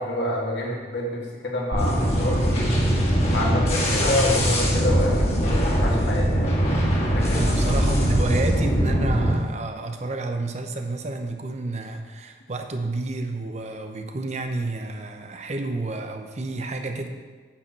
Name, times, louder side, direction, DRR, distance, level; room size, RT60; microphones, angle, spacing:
voice 1, 0.0-2.6 3.3-6.6 7.1-7.8, left 1 dB, 70° left, -3 dB, 2.1 m, -28 dB
sound 1, 1.7-9.3, equal, 35° left, 1.7 m, -21 dB
voice 2, 7.3-17.1, right 2 dB, 40° right, 5 dB, 0.7 m, -30 dB
9.7 x 4.3 x 7.4 m, 1.4 s
head